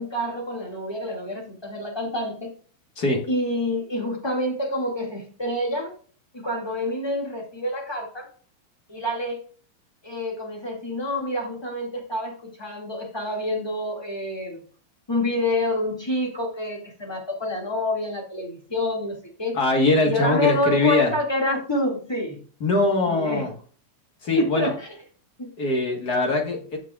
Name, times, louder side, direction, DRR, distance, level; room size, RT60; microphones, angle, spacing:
voice 1, 0.0-2.5 3.3-5.9 6.3-8.3 8.9-9.4 10.0-14.6 15.1-19.6 20.0-22.4 23.1-23.5 24.4-24.9 25.4-25.5, left 1 dB, 10° left, 0 dB, 1.1 m, -27 dB
voice 2, 19.5-21.1 22.6-23.5 24.2-24.7 25.6-26.8, left 2 dB, 50° left, 2 dB, 1.2 m, -22 dB
12.0 x 7.1 x 2.4 m, 0.43 s
omnidirectional pair, 4.3 m